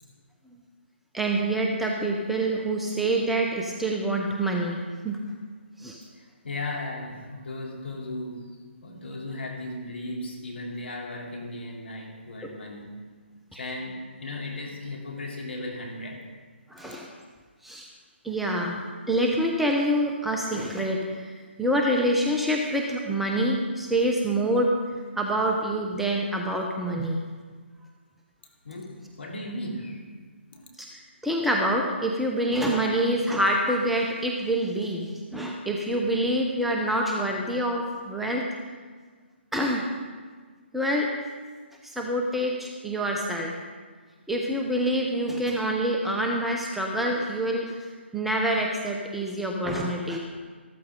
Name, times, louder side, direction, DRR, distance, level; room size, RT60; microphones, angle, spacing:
voice 1, 1.1-4.8 5.0-5.2 5.8-6.0 12.4-12.5 13.5-13.6 16.7-17.1 17.6-17.9 18.2-24.7 25.2-27.2 30.8-38.4 39.5-39.9 40.7-41.1 41.8-43.5 44.3-50.2, right 1 dB, 5° right, 0 dB, 0.8 m, -26 dB
voice 2, 6.0-12.9 13.3-16.2 28.6-30.1 30.5-30.7, left 2 dB, 60° left, -1 dB, 3.2 m, -36 dB
13.5 x 13.5 x 3.8 m, 1.5 s
figure-of-eight pair, 140°, 7 cm